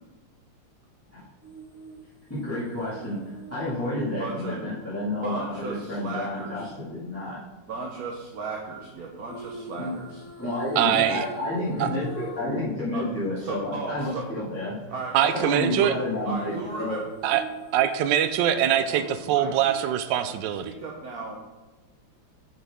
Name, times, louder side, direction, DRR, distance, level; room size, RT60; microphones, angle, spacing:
sound 1, 1.4-5.6 9.2-12.6 13.0-13.1 15.9-18.8 19.1-19.3, right 1 dB, 30° left, 1.5 m, -44 dB
voice 1, 2.3-7.4 9.7-9.9 10.4-14.8 15.3-17.0, left 1 dB, 5° left, -12 dB, 1.9 m, -30 dB
voice 2, 4.1-4.8 5.2-6.7 7.7-10.2 12.9-13.0 13.4-14.2 14.9-15.9 16.2-17.0 18.7-20.3 20.6-21.4, right 3 dB, 55° right, -1 dB, 1.1 m, -35 dB
voice 3, 10.8-11.2 11.8-11.9 15.1-15.9 17.2-17.4 17.7-20.7, right 10 dB, 75° right, 11 dB, 1.1 m, -23 dB
9.4 x 6.3 x 3.6 m, 1.2 s
omnidirectional pair, 2.4 m